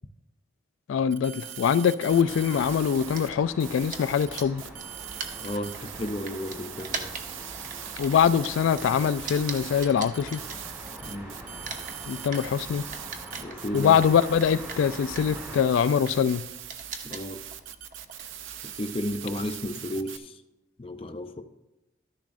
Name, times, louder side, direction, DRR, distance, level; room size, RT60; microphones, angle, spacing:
voice 1, 0.9-4.6 8.0-10.4 12.1-12.8 13.7-16.4, left 7 dB, 80° left, 0.3 m, -23 dB
sound 1, 1.1-3.3 3.6-20.2, right 10 dB, 80° right, 0.5 m, -41 dB
sound 2, 2.1-15.6, equal, 15° right, 1.3 m, -44 dB
sound 3, 3.0-11.2 11.4-19.7, right 4 dB, 40° right, 0.9 m, -41 dB
voice 2, 5.4-7.1 11.0-11.4 13.4-14.0 17.0-17.4 18.8-20.4 20.8-21.4, left 1 dB, 30° left, 0.5 m, -33 dB
13.0 x 10.5 x 2.6 m
head